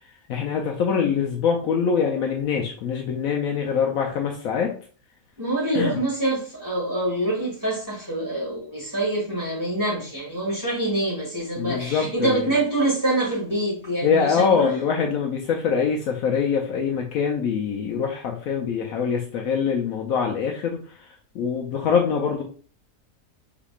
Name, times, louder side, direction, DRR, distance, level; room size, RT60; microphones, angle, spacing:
voice 1, 0.3-4.7 5.7-6.0 11.6-12.5 14.0-22.4, left 6 dB, 75° left, 1 dB, 1.0 m, -24 dB
voice 2, 5.4-14.7, right 1 dB, 15° right, -6 dB, 1.9 m, -25 dB
4.8 x 3.5 x 2.4 m, 0.43 s
omnidirectional pair, 1.6 m